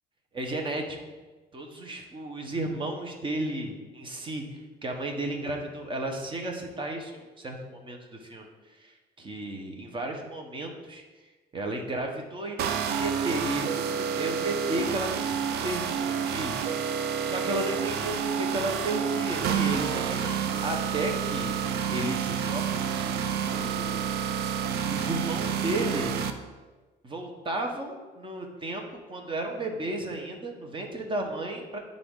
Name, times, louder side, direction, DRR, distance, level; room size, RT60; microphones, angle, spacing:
voice 1, 0.3-1.0 1.5-4.4 4.8-11.0 11.5-21.6 21.9-24.2 24.8-26.1 27.0-31.8, right 1 dB, 30° right, 2 dB, 1.3 m, -34 dB
sound 1, 12.6-26.3, right 7 dB, 75° right, 0.6 m, -29 dB
10.0 x 3.8 x 3.8 m, 1.2 s
cardioid pair, 110°, 17 cm